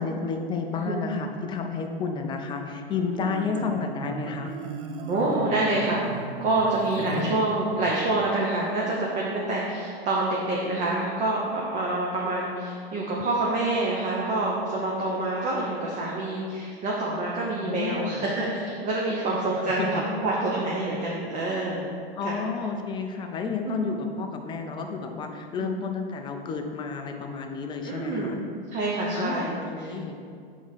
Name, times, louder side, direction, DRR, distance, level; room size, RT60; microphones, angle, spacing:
voice 1, 0.0-4.5 7.0-7.4 17.6-18.3 19.4-20.0 21.5-21.7 22.2-28.4 29.1-30.2, left 5 dB, 15° left, 4 dB, 0.4 m, -31 dB
Marimba xylophone, 2.9-8.0, right 5 dB, 55° right, 0.6 m, -37 dB
voice 2, 5.1-6.0 6.4-22.0 22.2-22.3 23.7-23.9 25.6-25.8 27.8-28.3 28.7-29.5, right 2 dB, 25° right, -4 dB, 0.8 m, -27 dB
4.7 x 3.6 x 5.5 m, 2.2 s
hypercardioid pair, 110°, 31 cm